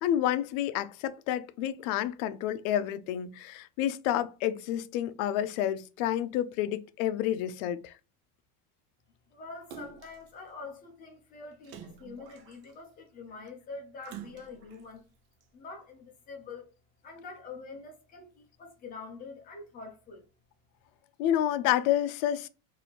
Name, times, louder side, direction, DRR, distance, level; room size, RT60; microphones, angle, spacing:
voice 1, 0.0-7.9 21.2-22.5, left 11 dB, 70° left, 0.5 m, -29 dB
voice 2, 9.3-15.0 15.5-16.7 17.0-20.2, left 4 dB, 20° left, 0.5 m, -45 dB
Splash splatter, 9.7-10.3 11.6-12.9 14.0-14.8 15.4-15.5, right 7 dB, 70° right, 0.8 m, -47 dB
4.1 x 2.7 x 2.8 m
cardioid pair, 175°, 43 cm